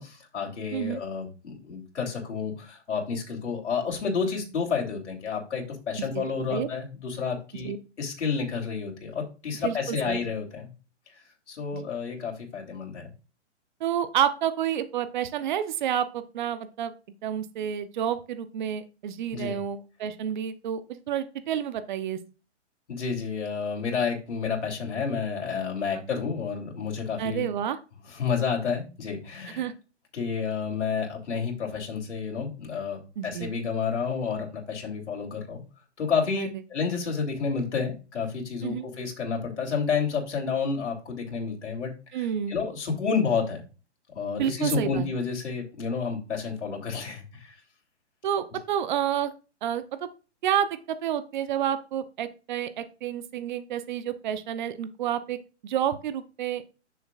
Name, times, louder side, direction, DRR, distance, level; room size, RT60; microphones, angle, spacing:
voice 1, 0.0-7.7 8.0-10.7 11.5-13.1 19.3-19.6 22.9-27.5 28.1-29.7 30.1-35.6 36.0-41.9 42.5-43.6 44.2-47.5, left 5 dB, 70° left, 1 dB, 3.5 m, -30 dB
voice 2, 0.7-1.0 6.0-6.7 7.6-7.8 9.6-10.2 11.7-11.8 13.8-16.9 17.2-22.2 25.9-26.0 27.2-27.8 29.6-29.7 33.2-33.5 36.4-36.5 38.6-38.9 42.1-42.5 44.4-45.0 48.2-49.3 49.6-49.8 50.4-55.4 55.6-56.6, right 9 dB, 40° right, 12 dB, 0.9 m, -29 dB
9.7 x 6.9 x 2.5 m, 0.33 s
hypercardioid pair, 145°, 36 cm